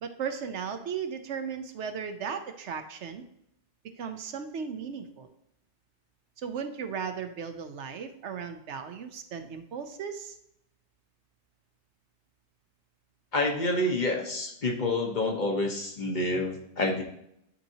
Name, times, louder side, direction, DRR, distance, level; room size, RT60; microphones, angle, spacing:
voice 1, 0.0-3.2 4.0-5.3 6.4-10.3, right 6 dB, 75° right, 7 dB, 1.0 m, -36 dB
voice 2, 13.3-17.0, left 2 dB, 45° left, 2 dB, 1.1 m, -28 dB
11.5 x 4.2 x 2.8 m, 0.75 s
omnidirectional pair, 1.2 m